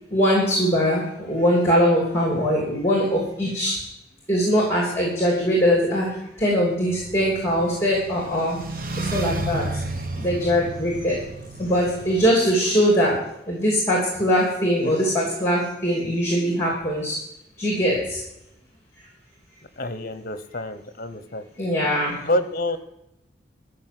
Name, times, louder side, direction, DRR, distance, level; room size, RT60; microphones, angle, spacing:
voice 1, 0.1-3.8 4.3-8.6 9.0-9.7 10.2-11.3 11.6-17.2 17.6-18.2 21.6-22.2, equal, 15° left, -2 dB, 2.9 m, -22 dB
sound 1, 6.9-12.3, right 2 dB, 50° right, 1.1 m, -32 dB
voice 2, 19.8-21.4 22.2-22.8, left 1 dB, 50° left, 11 dB, 0.9 m, -27 dB
13.5 x 6.3 x 7.6 m, 0.85 s
head